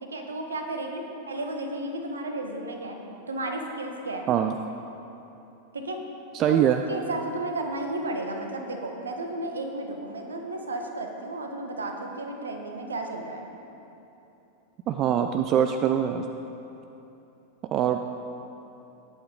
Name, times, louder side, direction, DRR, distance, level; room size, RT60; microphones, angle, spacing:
voice 1, 0.0-3.0 3.3-4.3 5.7-6.0 6.5-13.5, right 2 dB, 70° right, 3 dB, 1.4 m, -33 dB
voice 2, 6.3-6.8 14.9-16.2 17.6-18.0, right 9 dB, 35° right, 7 dB, 0.4 m, -23 dB
19.0 x 8.6 x 3.8 m, 3.0 s
figure-of-eight pair, 90°, 0 cm